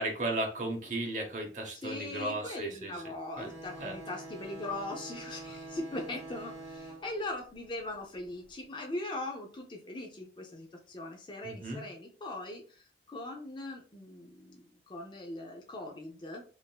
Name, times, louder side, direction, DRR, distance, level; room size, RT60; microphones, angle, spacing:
voice 1, 0.0-3.0 3.4-3.5 3.8-4.0 11.4-11.8, right 1 dB, 45° right, 2 dB, 0.8 m, -35 dB
voice 2, 1.8-16.4, left 2 dB, 25° left, 1 dB, 0.5 m, -40 dB
sound 1, 3.3-8.5, right 2 dB, 20° right, 1.2 m, -46 dB
3.5 x 2.6 x 2.2 m, 0.39 s
head